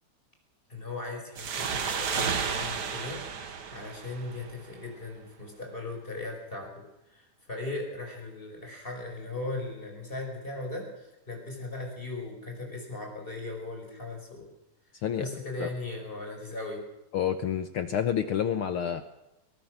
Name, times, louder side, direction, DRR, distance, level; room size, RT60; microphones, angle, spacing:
voice 1, 0.7-6.7 7.1-10.9 11.3-14.5 15.2-16.8, left 2 dB, 15° left, 1 dB, 5.6 m, -38 dB
sound 1, 1.4-4.7, right 6 dB, 45° right, 1.5 m, -32 dB
voice 2, 17.1-19.0, left 9 dB, 65° left, 9 dB, 1.4 m, -28 dB
22.0 x 18.5 x 6.5 m, 0.93 s
omnidirectional pair, 3.3 m